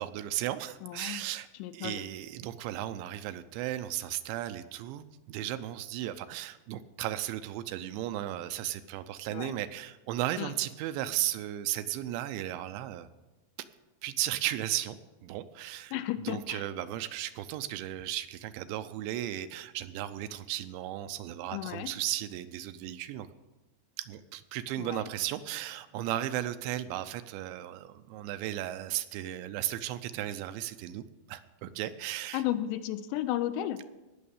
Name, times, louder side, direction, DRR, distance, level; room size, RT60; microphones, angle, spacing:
voice 1, 0.0-1.5 1.7-13.1 14.0-15.0 15.2-15.9 16.2-23.3 24.0-32.4, right 13 dB, 85° right, 11 dB, 2.9 m, -35 dB
voice 2, 0.8-1.2 1.6-2.0 9.3-9.5 10.4-10.5 15.9-16.6 21.5-21.9 24.8-25.1 32.3-33.9, left 13 dB, 80° left, 11 dB, 2.8 m, -33 dB
18.0 x 6.3 x 7.1 m, 1.1 s
omnidirectional pair, 5.2 m